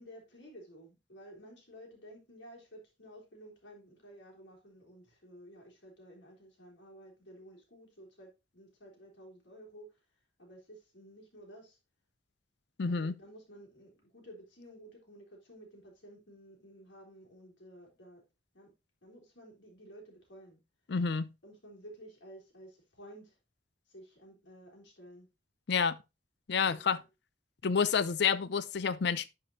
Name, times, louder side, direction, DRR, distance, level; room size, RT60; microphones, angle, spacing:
voice 1, 0.0-10.0 10.4-11.8 12.8-18.2 18.5-18.7 19.0-20.6 21.4-23.4 23.9-25.3 26.6-26.8, equal, 90° left, 3.7 m, -53 dB
voice 2, 12.8-13.2 20.9-21.3 25.7-26.0 26.5-27.0 27.6-29.3, left 6 dB, 65° left, 0.5 m, -29 dB
10.5 x 5.1 x 2.8 m
head